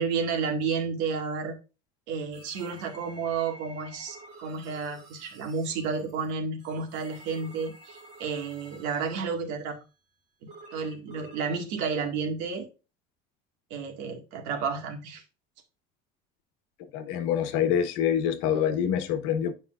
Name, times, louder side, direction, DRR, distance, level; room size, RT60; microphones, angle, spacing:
voice 1, 0.0-1.5 2.1-9.8 10.7-12.7 13.7-15.2, right 5 dB, 75° right, 2.1 m, -31 dB
sound 1, 2.3-9.5 10.5-11.6, right 1 dB, 35° right, 3.8 m, -50 dB
voice 2, 16.9-19.5, left 9 dB, 75° left, 1.3 m, -26 dB
9.6 x 5.4 x 2.5 m
cardioid pair, 170°, 19 cm